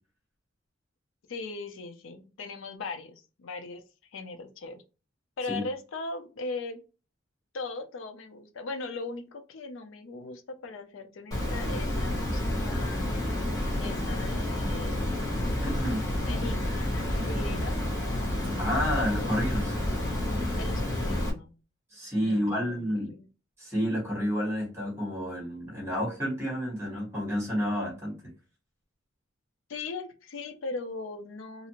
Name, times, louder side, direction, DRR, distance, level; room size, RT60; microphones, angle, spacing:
voice 1, 1.3-3.8 4.1-4.8 5.4-6.8 7.5-13.4 13.8-15.6 15.9-17.8 18.3-18.6 18.9-19.7 20.6-21.5 22.2-23.3 29.7-31.7, left 3 dB, 75° left, 8 dB, 0.4 m, -39 dB
Water, 11.3-21.3, left 1 dB, 15° left, 0.7 m, -29 dB
voice 2, 15.6-16.0 18.6-19.7 21.9-23.1 23.6-28.2, equal, 15° right, -2 dB, 1.2 m, -30 dB
2.6 x 2.4 x 2.8 m, 0.32 s
head